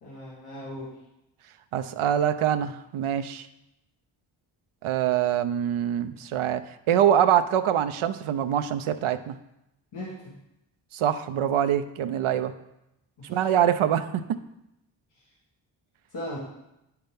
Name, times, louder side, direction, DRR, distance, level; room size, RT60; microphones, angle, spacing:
voice 1, 0.0-0.9 9.9-10.3 13.2-13.5 16.1-16.4, left 1 dB, 90° left, -7 dB, 1.9 m, -38 dB
voice 2, 1.7-3.5 4.8-9.4 10.9-12.5 13.2-14.4, right 10 dB, 75° right, 10 dB, 0.6 m, -24 dB
9.5 x 5.9 x 3.5 m, 0.87 s
supercardioid pair, 40°, 50 cm